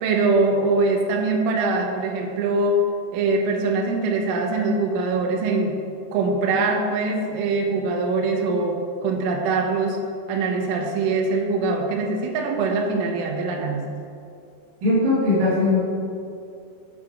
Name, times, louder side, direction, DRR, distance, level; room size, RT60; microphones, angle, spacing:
voice 1, 0.0-2.8 3.1-5.8 6.1-10.0 10.3-13.9, right 3 dB, 75° right, 2 dB, 3.2 m, -23 dB
voice 2, 14.8-15.8, left 2 dB, 55° right, -11 dB, 2.9 m, -19 dB
7.8 x 7.4 x 4.8 m, 2.5 s
omnidirectional pair, 5.9 m